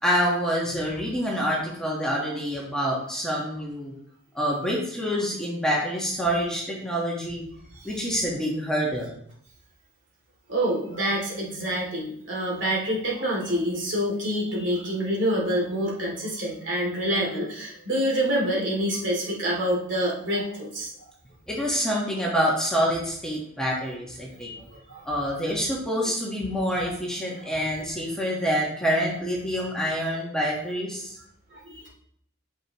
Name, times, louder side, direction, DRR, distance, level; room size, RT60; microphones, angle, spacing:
voice 1, 0.0-3.9 4.3-7.4 7.8-9.1 21.5-24.5 25.0-31.1, equal, 5° left, -4 dB, 1.4 m, -27 dB
voice 2, 10.5-20.9 24.4-24.6 24.9-25.0 31.7-31.9, equal, 60° right, -4 dB, 2.6 m, -27 dB
8.8 x 6.3 x 3.0 m, 0.68 s
head